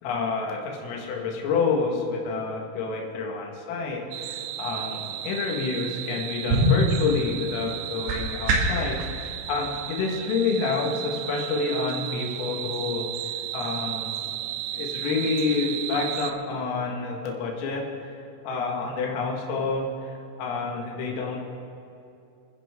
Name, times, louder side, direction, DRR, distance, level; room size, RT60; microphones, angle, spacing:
voice 1, 0.0-13.1 13.5-14.1 14.8-18.1 18.4-21.4, left 4 dB, 80° left, 0 dB, 4.5 m, -28 dB
sound 1, 4.1-16.3, right 12 dB, 85° right, 2.7 m, -34 dB
sound 2, 6.3-8.9, equal, 60° right, 3.9 m, -25 dB
29.5 x 10.0 x 3.8 m, 2.6 s
omnidirectional pair, 5.9 m